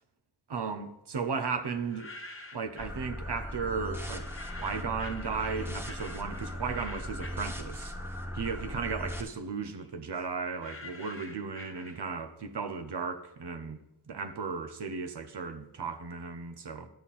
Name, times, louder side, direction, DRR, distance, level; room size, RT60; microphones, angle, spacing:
voice 1, 0.5-2.1 2.5-4.3 4.6-7.9 8.3-16.9, right 5 dB, 80° right, 0.9 m, -35 dB
sound 1, 1.7-3.0 4.0-8.2 8.6-12.3, left 2 dB, 30° left, 1.2 m, -48 dB
sound 2, 2.8-9.2, equal, 5° right, 1.4 m, -38 dB
12.5 x 7.4 x 4.2 m
wide cardioid pair, 70°, 40 cm